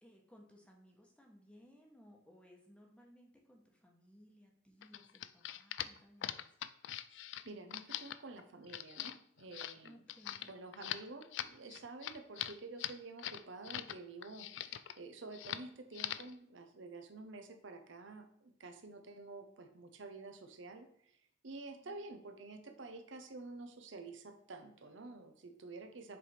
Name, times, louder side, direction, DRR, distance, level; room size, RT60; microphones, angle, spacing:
voice 1, 0.0-6.5 9.8-10.5 21.8-22.3, equal, 5° left, 0 dB, 1.0 m, -62 dB
sound 1, 4.8-14.0 14.2-15.0 15.3-15.7 15.9-16.3, left 12 dB, 75° left, 0.3 m, -42 dB
voice 2, 7.1-10.0 10.5-21.1 21.4-26.2, right 3 dB, 85° right, 6 dB, 0.8 m, -50 dB
7.4 x 3.4 x 4.3 m, 0.67 s
head